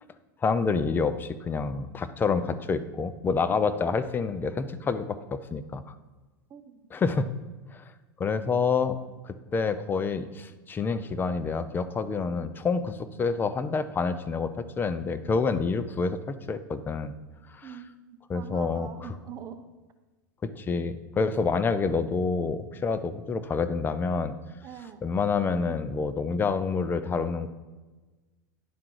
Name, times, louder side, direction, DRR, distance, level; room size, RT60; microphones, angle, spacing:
voice 1, 0.4-5.8 6.9-7.3 7.7-7.8 8.2-9.0 9.2-17.1 17.5-17.7 18.3-18.9 20.4-24.4 25.0-27.5, left 4 dB, 20° left, 12 dB, 0.5 m, -28 dB
voice 2, 6.5-6.9 17.6-19.6 24.6-25.0, right 8 dB, 35° right, 8 dB, 0.7 m, -43 dB
10.0 x 3.7 x 4.6 m, 1.2 s
hypercardioid pair, 110°, 11 cm